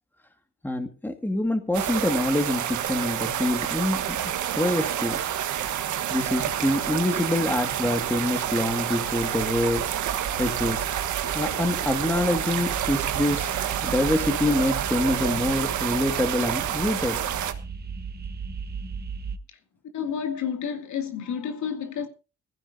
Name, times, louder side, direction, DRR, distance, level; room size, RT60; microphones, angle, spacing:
voice 1, 0.6-4.2 4.5-5.3 6.1-9.8 10.4-10.8 11.3-13.6 13.8-17.2, left 1 dB, 5° left, 2.1 m, -26 dB
sound 1, 1.7-17.5, right 10 dB, 75° right, 1.4 m, -28 dB
sound 2, 8.3-19.4, right 5 dB, 35° right, 0.9 m, -38 dB
voice 2, 19.9-22.1, left 7 dB, 75° left, 2.6 m, -30 dB
19.0 x 15.0 x 2.8 m
cardioid pair, 90°, 30 cm